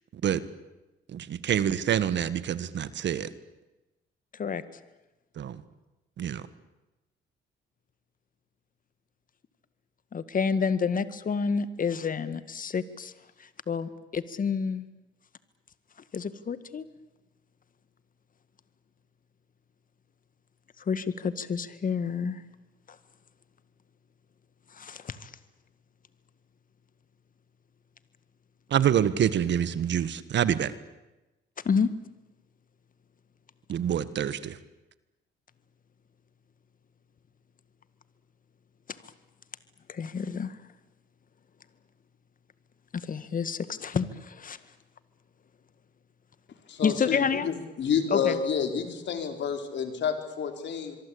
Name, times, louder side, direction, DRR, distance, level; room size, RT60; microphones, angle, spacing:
voice 1, 1.1-3.3 5.4-5.6 6.2-6.4 28.7-30.7 33.7-34.6, right 9 dB, 65° right, 15 dB, 1.6 m, -26 dB
voice 2, 10.1-13.1 13.4-14.9 16.1-16.9 20.9-22.4 24.7-25.3 31.6-31.9 38.9-39.0 39.9-40.6 42.9-44.6 46.8-47.5 48.1-48.4, left 6 dB, 45° left, 13 dB, 1.9 m, -29 dB
voice 3, 46.7-51.0, left 7 dB, 65° left, 6 dB, 4.4 m, -29 dB
25.5 x 23.0 x 8.7 m, 1.0 s
cardioid pair, 90°, 20 cm